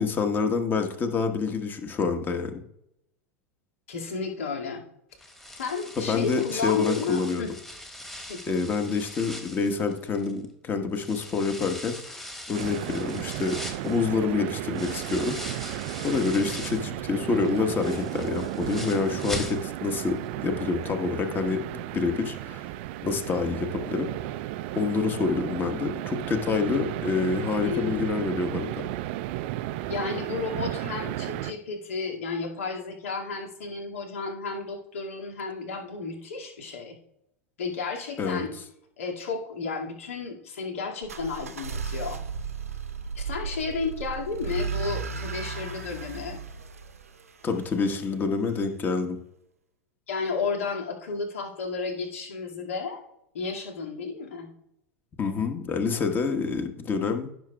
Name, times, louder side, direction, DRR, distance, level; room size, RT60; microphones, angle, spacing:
voice 1, 0.0-2.6 6.0-7.4 8.5-12.2 12.5-13.6 13.8-22.7 23.0-24.1 24.7-28.9 38.2-38.4 47.4-49.2 55.2-57.3, left 4 dB, 25° left, 6 dB, 1.3 m, -27 dB
voice 2, 3.9-4.8 5.6-7.5 8.3-8.4 27.6-28.1 29.9-37.0 37.6-38.6 39.0-42.2 43.2-46.4 50.1-53.0 53.3-54.5, left 4 dB, 65° left, 0 dB, 2.1 m, -32 dB
sound 1, 5.2-10.5 10.9-16.9 17.3-20.0 20.3-20.4 20.8-20.9, left 1 dB, 5° left, 1.4 m, -41 dB
sound 2, 12.5-31.5, right 14 dB, 50° right, 0.4 m, -34 dB
sound 3, 41.0-47.9, right 5 dB, 75° right, 0.9 m, -35 dB
15.5 x 6.7 x 2.3 m, 0.78 s
figure-of-eight pair, 85°, 8 cm